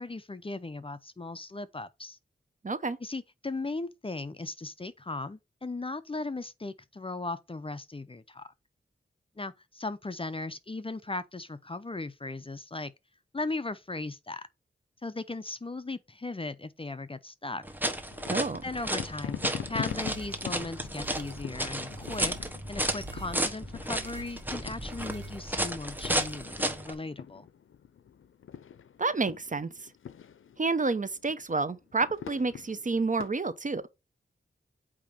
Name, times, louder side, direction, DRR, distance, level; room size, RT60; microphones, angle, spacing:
voice 1, 0.0-2.2 3.0-8.5 9.4-12.9 13.3-14.5 15.0-17.6 18.6-19.4 19.7-22.3 22.7-27.5, left 3 dB, 25° left, 0.6 m, -37 dB
voice 2, 2.6-3.0 18.3-18.6 29.0-29.7 30.6-33.8, right 3 dB, 40° right, 0.7 m, -29 dB
sound 1, 17.6-26.9, right 1 dB, 10° right, 1.1 m, -33 dB
sound 2, 18.1-33.3, left 8 dB, 85° left, 0.5 m, -44 dB
sound 3, 19.8-26.8, right 5 dB, 60° right, 1.3 m, -50 dB
8.6 x 2.9 x 5.2 m
wide cardioid pair, 70°, 20 cm